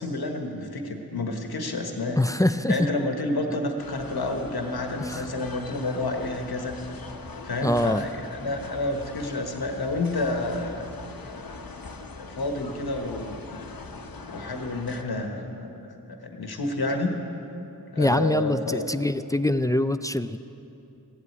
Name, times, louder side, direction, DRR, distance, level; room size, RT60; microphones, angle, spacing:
voice 1, 0.0-2.2 2.7-6.8 7.4-10.9 12.2-13.4 14.3-15.5 16.2-17.1 17.9-18.9, left 2 dB, 85° left, 4 dB, 1.4 m, -29 dB
voice 2, 2.2-2.9 5.0-5.3 7.6-8.0 18.0-20.4, left 1 dB, 10° left, 11 dB, 0.4 m, -24 dB
sound 1, 3.8-15.0, left 3 dB, 65° left, 1.1 m, -41 dB
15.5 x 8.4 x 9.4 m, 2.9 s
wide cardioid pair, 55°, 37 cm